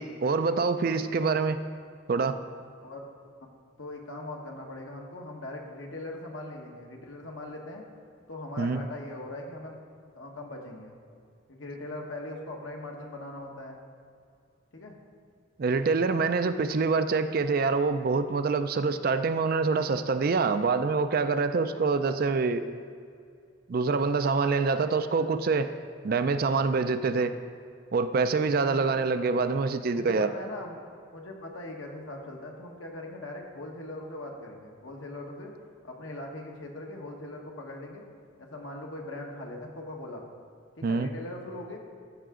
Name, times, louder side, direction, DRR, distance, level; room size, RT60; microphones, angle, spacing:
voice 1, 0.0-1.6 2.1-2.4 8.6-8.8 15.6-22.7 23.7-25.7 26.0-27.3 27.9-30.3 40.8-41.1, right 4 dB, 50° right, 10 dB, 0.4 m, -26 dB
voice 2, 3.8-7.8 8.3-9.8 10.1-11.0 11.5-13.8 14.7-15.0 16.4-16.6 28.7-28.9 29.9-30.8 31.1-35.5 35.8-38.0 38.4-40.2 40.7-41.8, left 1 dB, 75° left, 0 dB, 1.4 m, -40 dB
14.0 x 5.7 x 3.7 m, 2.3 s
head